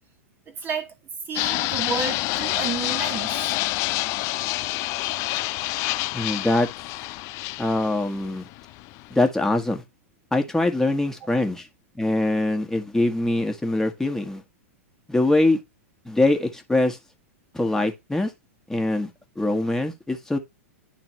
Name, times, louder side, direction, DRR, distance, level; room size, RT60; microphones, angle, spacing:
voice 1, 0.5-1.0 1.3-3.6, right 5 dB, 25° right, 1.2 m, -31 dB
Fixed-wing aircraft airplane, 1.4-9.3, left 19 dB, 40° left, 0.5 m, -28 dB
voice 2, 6.1-6.7 7.6-8.5 9.1-9.8 10.3-11.7 12.0-14.4 15.1-15.6 16.1-17.0 17.5-18.3 18.7-19.1 19.4-20.4, left 2 dB, 5° left, 1.4 m, -23 dB
11.0 x 4.0 x 3.0 m
figure-of-eight pair, 105°, 8 cm